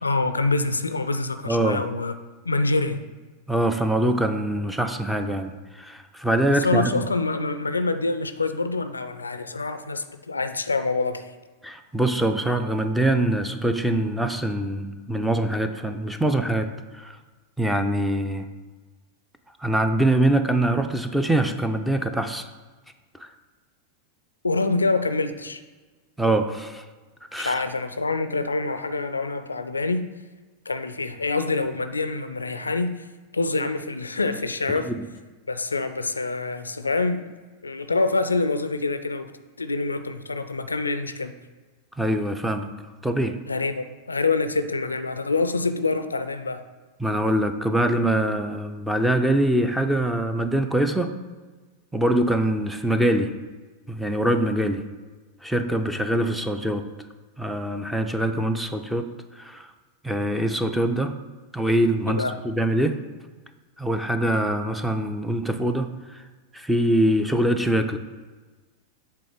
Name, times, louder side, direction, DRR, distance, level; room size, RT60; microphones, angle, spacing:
voice 1, 0.0-2.1 2.5-3.0 6.5-11.3 24.4-25.6 27.4-30.1 30.7-33.1 33.3-34.9 35.5-37.3 37.6-39.3 39.6-41.4 43.5-46.6 62.1-62.4, left 3 dB, 80° left, 10 dB, 0.4 m, -26 dB
voice 2, 1.5-1.8 3.5-6.9 11.6-17.2 17.6-18.5 19.6-22.5 23.2-23.3 26.2-26.8 27.3-27.6 34.9-35.0 42.0-42.7 43.0-43.4 47.0-51.2 51.9-53.3 53.9-54.8 55.4-56.9 57.4-59.1 59.4-59.7 60.0-61.1 61.5-63.0 63.8-66.2 66.5-68.0, right 1 dB, 5° right, 7 dB, 0.5 m, -23 dB
7.7 x 3.4 x 4.9 m, 1.3 s
figure-of-eight pair, 90°, 0 cm